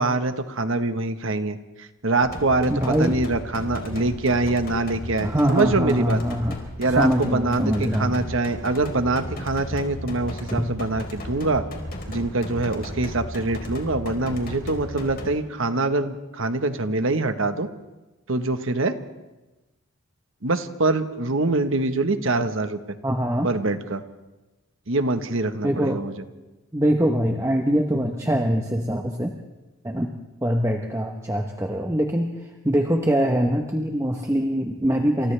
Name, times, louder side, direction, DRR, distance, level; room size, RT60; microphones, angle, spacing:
voice 1, 0.0-6.2 6.8-11.6 12.1-17.7 18.3-18.9 20.4-22.8 23.4-24.0 24.9-26.1, right 2 dB, 65° right, 8 dB, 1.3 m, -24 dB
sound 1, 2.2-15.3, left 1 dB, 45° left, 4.0 m, -35 dB
voice 2, 2.7-3.2 5.2-6.6 6.9-8.2 10.5-10.7 23.0-23.5 25.6-26.0 26.7-29.3 29.8-30.1 30.4-35.3, equal, 15° right, 2 dB, 1.1 m, -23 dB
29.0 x 27.5 x 3.4 m, 1.1 s
head